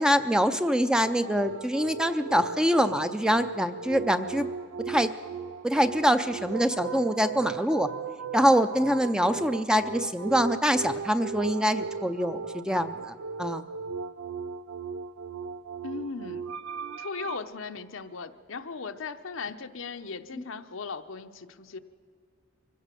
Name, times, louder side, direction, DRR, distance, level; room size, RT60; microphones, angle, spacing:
voice 1, 0.0-4.5 4.9-5.1 5.6-7.9 8.3-13.7 20.3-20.4, equal, 5° right, 9 dB, 0.5 m, -25 dB
sound 1, 1.0-17.4, right 5 dB, 80° right, 0.5 m, -37 dB
voice 2, 15.8-16.4 17.0-21.8, left 4 dB, 70° left, 8 dB, 0.8 m, -37 dB
24.0 x 16.0 x 6.8 m, 2.2 s
head